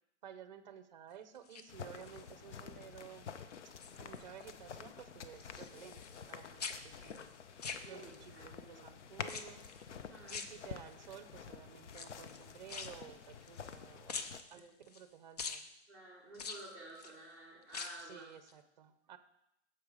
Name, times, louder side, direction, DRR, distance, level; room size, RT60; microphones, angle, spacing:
voice 1, 0.2-3.3 3.6-3.7 4.0-6.0 6.3-7.3 7.8-9.6 10.3-15.6 18.0-19.2, right 8 dB, 40° right, 11 dB, 0.7 m, -54 dB
sound 1, 1.4-2.3 2.8-3.2 3.5-4.5 4.8-6.3 6.6-8.4 9.2-9.8 10.3-11.1 11.9-13.8 14.1-15.1 15.4-15.7 16.3-17.2 17.6-18.1 18.5-18.6, left 5 dB, 35° left, 0.5 m, -46 dB
sound 2, 1.7-14.4, left 7 dB, 90° left, 0.9 m, -49 dB
voice 2, 7.9-8.9 9.9-10.4 14.5-14.7 15.9-18.3, right 2 dB, 10° left, -7 dB, 2.7 m, -52 dB
8.9 x 7.4 x 4.9 m, 0.81 s
hypercardioid pair, 175°, 34 cm